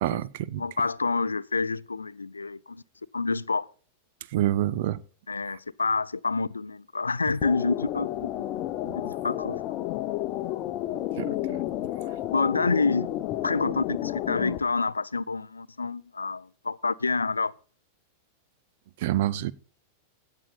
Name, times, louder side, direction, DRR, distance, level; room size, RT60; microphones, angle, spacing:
voice 1, 0.0-0.6 4.3-5.0 11.2-11.6 19.0-19.5, right 13 dB, 50° right, 0.5 m, -27 dB
voice 2, 0.6-2.8 3.1-3.7 5.3-8.5 9.1-9.6 12.3-13.1 13.4-17.5, left 4 dB, 80° left, 0.4 m, -28 dB
sound 1, 7.4-14.6, left 14 dB, 40° left, 0.8 m, -31 dB
16.5 x 6.7 x 4.1 m
figure-of-eight pair, 90°, 0 cm